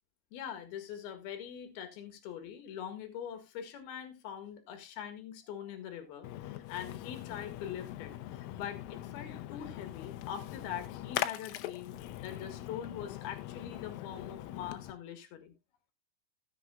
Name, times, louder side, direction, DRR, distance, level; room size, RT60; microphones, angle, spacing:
voice 1, 0.3-15.5, left 9 dB, 60° left, 3.1 m, -43 dB
Splash splatter, 6.2-14.9, left 14 dB, 80° left, 3.3 m, -41 dB
16.0 x 7.8 x 2.4 m
omnidirectional pair, 5.9 m